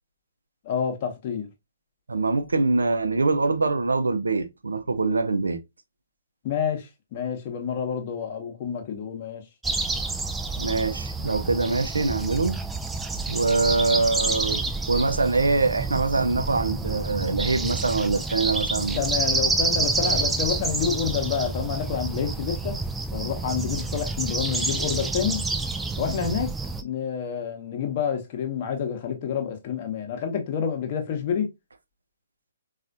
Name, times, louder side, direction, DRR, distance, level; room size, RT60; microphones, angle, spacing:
voice 1, 0.6-1.5 6.4-9.4 19.0-22.8 23.1-25.4 26.0-26.5 26.8-31.5, left 7 dB, 40° left, 0.9 m, -28 dB
voice 2, 2.1-5.6 10.6-12.6 13.3-14.6 14.9-19.1 20.0-20.2, right 3 dB, 75° right, 0.5 m, -24 dB
sound 1, 9.6-26.8, right 3 dB, 5° right, 0.3 m, -28 dB
4.1 x 2.4 x 2.4 m
figure-of-eight pair, 125°, 0 cm